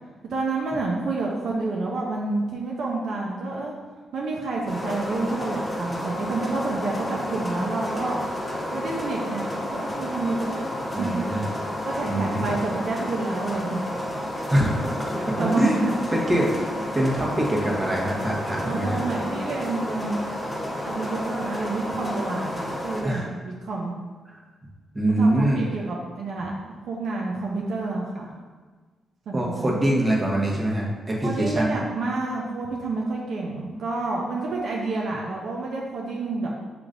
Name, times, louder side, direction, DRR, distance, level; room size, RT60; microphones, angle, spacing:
voice 1, 0.3-3.7 4.1-8.2 8.7-10.6 11.0-11.5 11.8-13.8 15.1-15.9 17.0-17.1 18.6-20.2 20.8-23.9 25.2-26.6 26.9-28.3 29.3-29.8 31.2-36.5, right 3 dB, 70° right, -2 dB, 0.6 m, -29 dB
sound 1, 4.7-23.0, left 1 dB, 10° left, 1.1 m, -31 dB
voice 2, 10.9-11.4 12.1-12.6 14.5-16.5 16.9-19.0 23.0-23.3 24.9-25.6 29.3-31.8, right 1 dB, 25° right, -3 dB, 1.1 m, -24 dB
6.5 x 3.0 x 2.5 m, 1.4 s
cardioid pair, 75°, 0 cm